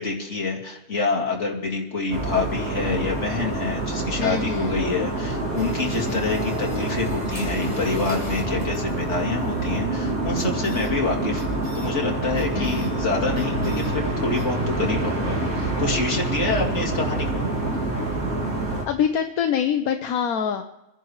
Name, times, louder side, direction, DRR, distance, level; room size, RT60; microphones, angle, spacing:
voice 1, 0.0-17.4, left 3 dB, 50° left, -1 dB, 2.5 m, -27 dB
sound 1, 2.1-18.8, right 2 dB, 70° right, 2.9 m, -26 dB
voice 2, 4.2-4.7 12.5-12.9 18.8-20.6, left 8 dB, 75° left, 5 dB, 1.3 m, -25 dB
sound 2, 5.5-9.9 10.4-10.9 11.4-11.9 12.4-12.9 13.4-13.9 14.4-14.5, equal, 30° right, 6.1 m, -45 dB
27.5 x 10.5 x 3.2 m, 0.96 s
omnidirectional pair, 1.6 m